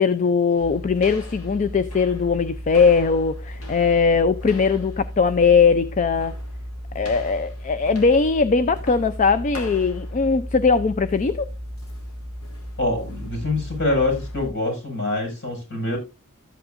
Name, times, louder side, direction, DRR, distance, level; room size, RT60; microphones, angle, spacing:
voice 1, 0.0-6.3 6.9-11.5, left 5 dB, 35° left, 0.4 m, -20 dB
sound 1, 0.6-14.5, equal, 75° left, 2.7 m, -35 dB
voice 2, 12.8-16.0, left 2 dB, 55° left, 5.7 m, -25 dB
13.0 x 8.8 x 2.5 m
head